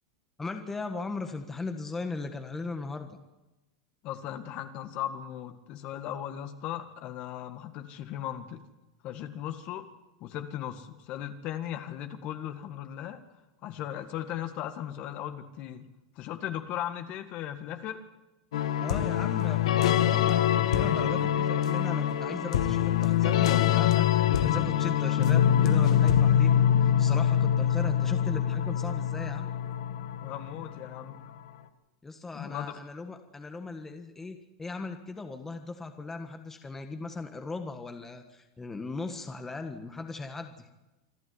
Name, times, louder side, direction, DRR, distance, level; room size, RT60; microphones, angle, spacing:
voice 1, 0.4-3.2 18.8-29.5 32.0-40.7, left 3 dB, 10° left, 6 dB, 1.5 m, -38 dB
voice 2, 4.0-8.6 9.0-9.9 10.2-13.2 13.6-15.9 16.2-18.0 30.2-31.2 32.3-32.8, left 11 dB, 40° left, 8 dB, 1.9 m, -37 dB
sound 1, 18.5-31.1, left 10 dB, 85° left, 1.6 m, -24 dB
26.5 x 12.0 x 9.8 m, 1.0 s
supercardioid pair, 145°, 3 cm